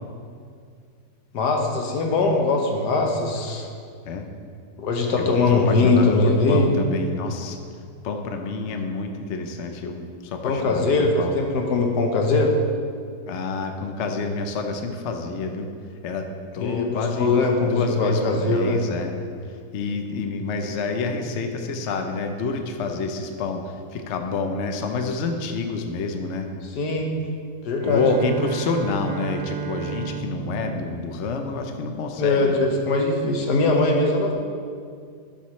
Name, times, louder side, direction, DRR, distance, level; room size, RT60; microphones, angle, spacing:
voice 1, 1.3-3.7 4.8-6.7 10.4-12.5 16.6-18.8 26.7-27.1 27.6-28.0 32.2-34.3, left 3 dB, 75° left, 2 dB, 1.5 m, -21 dB
voice 2, 5.2-7.6 8.0-10.9 11.2-11.4 13.2-15.7 16.0-16.3 16.5-19.1 19.7-26.5 27.8-32.6, left 4 dB, 55° left, 5 dB, 0.8 m, -28 dB
Bowed string instrument, 27.8-32.1, right 8 dB, 80° right, 1.2 m, -33 dB
12.0 x 7.1 x 3.2 m, 2.2 s
omnidirectional pair, 1.8 m